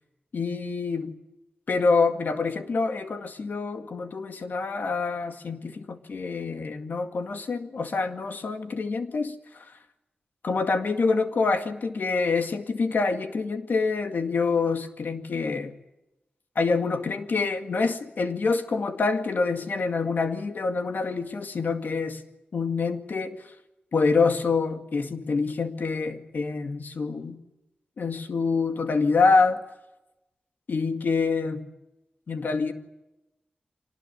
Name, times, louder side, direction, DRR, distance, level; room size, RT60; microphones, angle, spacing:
voice 1, 0.3-1.2 1.7-9.7 10.4-15.7 16.6-22.2 22.5-23.4 23.9-27.4 28.0-29.6 30.7-31.7 32.3-32.7, left 4 dB, 80° left, 7 dB, 2.1 m, -26 dB
25.0 x 19.5 x 9.5 m, 0.96 s
wide cardioid pair, 85°, 3 cm